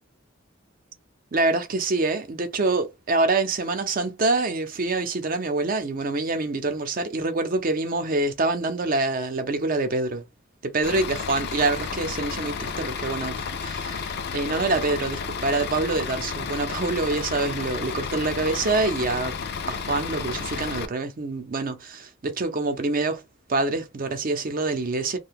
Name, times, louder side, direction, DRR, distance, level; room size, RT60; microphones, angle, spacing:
voice 1, 1.3-10.2 10.6-19.4 19.7-23.2 23.5-25.2, right 3 dB, 45° right, 0.6 m, -26 dB
Bus / Idling, 10.8-20.9, left 6 dB, 55° left, 0.4 m, -32 dB
2.7 x 2.2 x 3.5 m
head